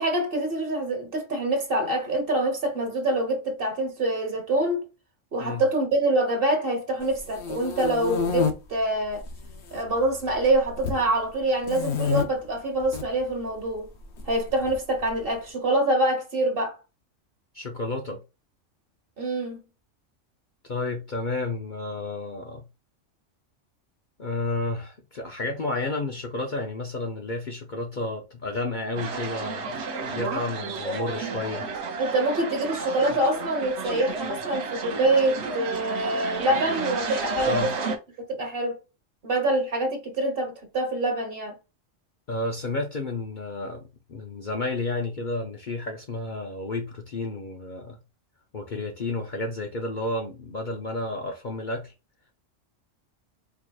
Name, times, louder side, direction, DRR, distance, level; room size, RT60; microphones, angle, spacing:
voice 1, 0.0-4.8 5.3-9.2 9.7-13.9 14.2-16.8 19.2-19.6 32.0-37.9 38.3-38.8 39.2-41.6, right 1 dB, 50° right, 1.3 m, -25 dB
sound 1, 7.1-8.5 9.2-9.8 10.1-11.0 11.6-12.2 12.8-13.0 14.2-15.1, left 6 dB, 65° left, 1.0 m, -28 dB
voice 2, 17.5-18.2 20.6-22.6 24.2-31.7 37.5-37.7 42.3-43.8 44.1-48.0 48.5-51.9, left 2 dB, 50° left, 0.7 m, -31 dB
sound 2, 29.0-38.0, right 4 dB, 65° right, 1.0 m, -32 dB
4.8 x 2.7 x 2.3 m
omnidirectional pair, 1.3 m